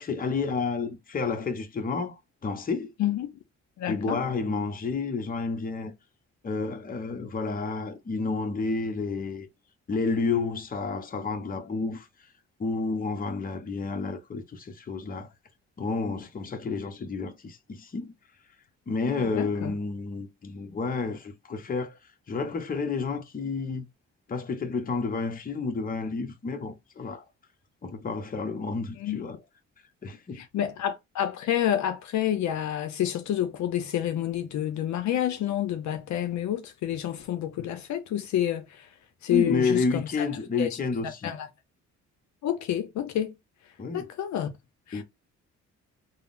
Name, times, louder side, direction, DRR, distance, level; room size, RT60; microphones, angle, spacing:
voice 1, 0.0-2.2 2.4-2.9 3.9-5.9 6.4-9.5 9.9-12.1 12.6-15.3 15.8-18.1 18.9-22.0 22.3-23.8 24.3-27.2 27.8-29.4 30.0-30.4 39.3-41.3 43.8-44.1 44.9-45.0, left 4 dB, 30° left, 0.7 m, -30 dB
voice 2, 3.0-3.3 3.8-4.2 19.2-19.8 28.9-29.2 30.3-38.9 39.2-40.3 40.6-40.8 41.0-41.5 42.4-43.3 43.9-44.5 44.9-45.0, left 11 dB, 70° left, 0.6 m, -29 dB
3.5 x 2.0 x 2.4 m
cardioid pair, 90°, 30 cm